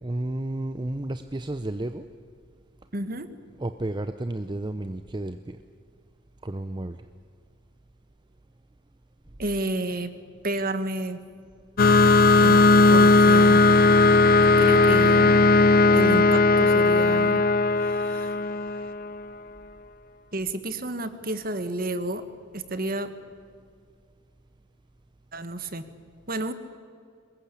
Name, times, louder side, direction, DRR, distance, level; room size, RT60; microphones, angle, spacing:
voice 1, 0.0-2.0 3.6-5.6 6.4-7.0, right 1 dB, 20° right, 9 dB, 0.6 m, -32 dB
voice 2, 2.9-3.3 9.4-10.1 10.4-11.2 12.4-12.6 12.9-13.6 14.6-15.4 15.9-17.4 17.8-18.4 20.3-22.2 22.5-23.1 25.3-25.8 26.3-26.5, right 2 dB, 45° right, 11 dB, 1.5 m, -30 dB
sound 1, 11.8-19.1, left 3 dB, 45° left, 0.6 m, -17 dB
23.5 x 20.5 x 8.5 m, 2.2 s
head